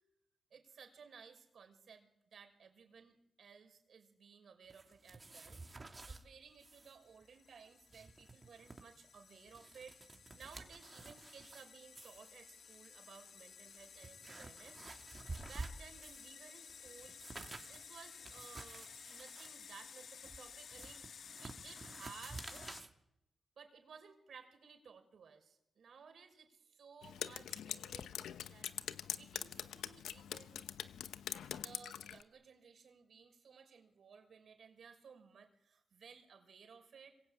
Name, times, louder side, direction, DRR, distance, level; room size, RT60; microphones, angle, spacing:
voice 1, 0.5-5.6 6.1-14.8 15.5-17.2 17.5-22.8 23.6-28.2 28.4-28.7 29.1-30.7 31.5-37.2, right 6 dB, 65° right, 5 dB, 5.7 m, -58 dB
sound 1, 4.7-6.2 6.6-7.0 7.2-7.3 7.7-8.8 9.3-11.6 12.0-12.3 13.1-13.2 13.7-16.3 16.7-22.9, right 3 dB, 30° right, 2.8 m, -51 dB
sound 2, 6.8-22.8, left 6 dB, 65° left, 1.0 m, -55 dB
Drip, 27.0-32.2, left 9 dB, 90° left, 1.0 m, -44 dB
26.0 x 22.5 x 8.9 m, 0.84 s
cardioid pair, 75°, 0 cm